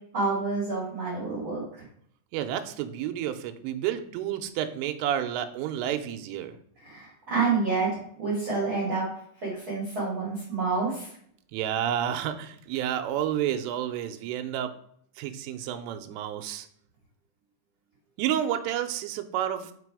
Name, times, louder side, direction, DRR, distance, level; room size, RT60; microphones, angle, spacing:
voice 1, 0.1-1.8 6.8-7.9 8.2-9.1 9.4-11.1, right 4 dB, 35° right, -7 dB, 2.3 m, -28 dB
voice 2, 2.3-6.5 11.5-14.7 15.2-16.7 18.2-19.7, right 10 dB, 85° right, 7 dB, 3.2 m, -30 dB
6.1 x 5.2 x 4.8 m, 0.64 s
omnidirectional pair, 5.6 m